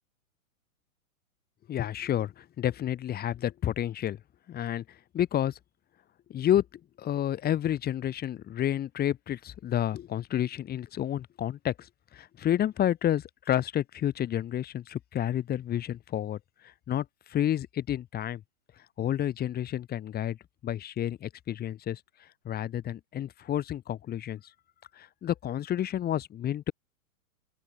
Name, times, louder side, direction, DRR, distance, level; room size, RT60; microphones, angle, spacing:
voice 1, 1.7-4.2 4.5-4.8 5.1-5.6 6.3-6.7 7.0-11.9 12.1-16.4 16.6-18.4 19.0-20.4 20.6-22.0 22.5-24.4 25.0-26.7, left 11 dB, 20° left, 7.3 m, -30 dB
open air
hypercardioid pair, 150°, 42 cm